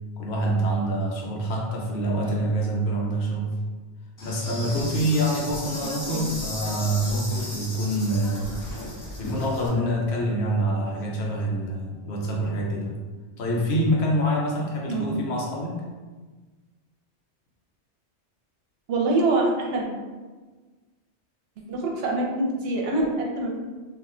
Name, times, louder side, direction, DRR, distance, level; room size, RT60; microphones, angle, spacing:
voice 1, 0.2-3.6 4.2-8.5 9.2-13.0 13.4-15.8, right 1 dB, 70° left, -2 dB, 0.9 m, -26 dB
Insect, 4.2-9.7, left 1 dB, 30° left, 0.3 m, -35 dB
voice 2, 5.8-6.3 14.9-15.1 18.9-19.9 21.7-23.6, right 2 dB, 65° right, -1 dB, 0.8 m, -25 dB
2.4 x 2.1 x 3.6 m, 1.4 s
omnidirectional pair, 1.2 m